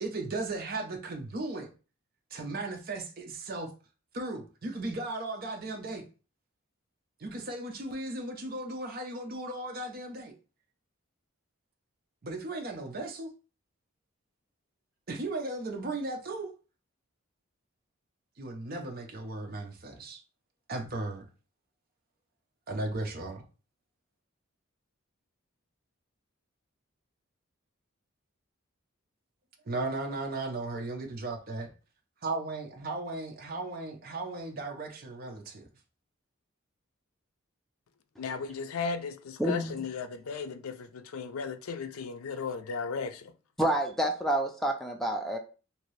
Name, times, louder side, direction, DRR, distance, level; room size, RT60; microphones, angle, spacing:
voice 1, 0.0-1.7 2.3-3.7 4.1-6.0 7.2-10.4 12.2-13.3 15.1-16.5 18.4-20.2 20.7-21.2 22.7-23.4 29.7-31.7 32.2-35.7, right 2 dB, 45° right, 0.6 m, -36 dB
voice 2, 38.2-43.3, left 5 dB, 85° left, 0.4 m, -35 dB
voice 3, 39.4-39.8 43.6-45.4, right 1 dB, ahead, 0.4 m, -28 dB
2.8 x 2.6 x 3.1 m
head